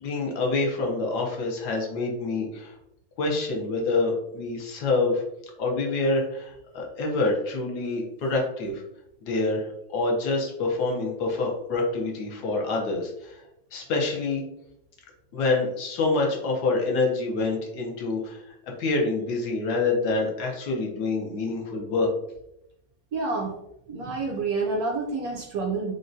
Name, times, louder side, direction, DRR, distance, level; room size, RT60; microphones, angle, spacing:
voice 1, 0.0-2.8 3.2-5.2 5.6-8.8 9.2-13.4 13.7-14.4 15.3-18.4 18.8-22.1, left 3 dB, 70° left, 0 dB, 1.2 m, -26 dB
voice 2, 23.1-23.5 23.9-25.9, right 3 dB, 70° right, 0 dB, 0.9 m, -28 dB
3.6 x 2.1 x 2.6 m, 0.79 s
omnidirectional pair, 1.9 m